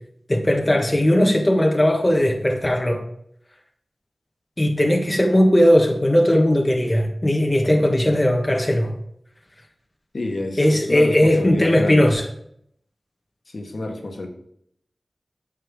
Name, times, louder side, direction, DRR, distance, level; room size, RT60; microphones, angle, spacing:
voice 1, 0.3-3.0 4.6-8.9 10.6-12.2, left 1 dB, 25° left, 2 dB, 1.3 m, -18 dB
voice 2, 10.1-12.1 13.5-14.3, left 2 dB, 65° left, 3 dB, 1.6 m, -28 dB
9.1 x 6.6 x 3.6 m, 0.70 s
wide cardioid pair, 55°, 0 cm